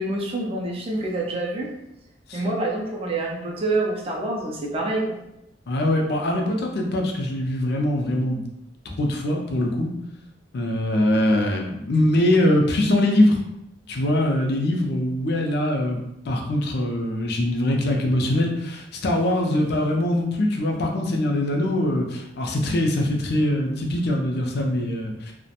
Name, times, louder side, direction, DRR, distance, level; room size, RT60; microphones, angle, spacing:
voice 1, 0.0-1.7 2.3-5.2, right 2 dB, 30° right, -2 dB, 0.4 m, -26 dB
voice 2, 5.7-8.4 8.9-9.9 10.5-13.4 13.9-16.0 16.3-25.3, left 1 dB, 60° left, 1 dB, 0.5 m, -22 dB
2.4 x 2.1 x 2.8 m, 0.84 s
head